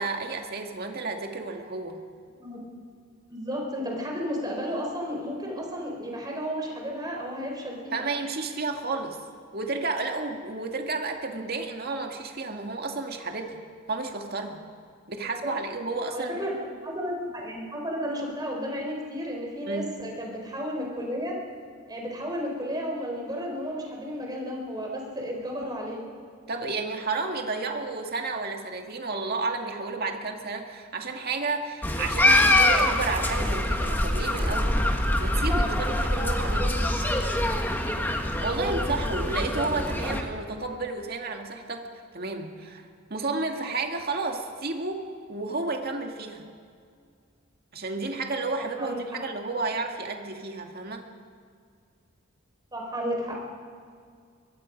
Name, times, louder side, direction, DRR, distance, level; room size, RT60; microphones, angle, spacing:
voice 1, 0.0-2.0 7.9-9.2 9.5-13.6 13.9-14.6 15.1-16.4 19.7-20.0 26.5-34.8 35.2-36.7 38.4-45.0 45.3-46.4 47.7-51.0, right 3 dB, 50° right, 3 dB, 2.0 m, -31 dB
voice 2, 3.3-8.1 15.4-15.5 16.1-21.4 21.9-26.0 36.4-36.7 38.4-38.7 48.6-49.0 52.7-53.4, equal, 20° right, -1 dB, 4.4 m, -33 dB
sound 1, 31.8-40.2, left 1 dB, 10° left, 1.6 m, -24 dB
23.0 x 23.0 x 5.3 m, 2.2 s
head